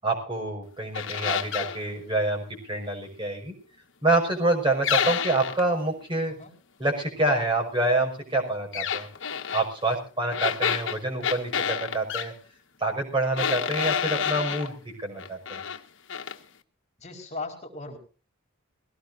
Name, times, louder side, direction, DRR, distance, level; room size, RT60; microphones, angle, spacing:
voice 1, 0.0-3.5 4.0-6.3 6.8-9.1 9.5-12.3 12.8-14.7 15.0-15.6, right 2 dB, 25° right, 1 dB, 6.2 m, -27 dB
sound 1, 0.9-1.8 4.8-5.7 8.7-9.7 10.3-12.3 13.4-14.7 15.2-15.8 16.1-16.4, left 8 dB, 60° left, 1.5 m, -28 dB
voice 2, 17.0-18.0, left 3 dB, 35° left, 1 dB, 4.7 m, -37 dB
21.5 x 17.5 x 2.6 m, 0.38 s
head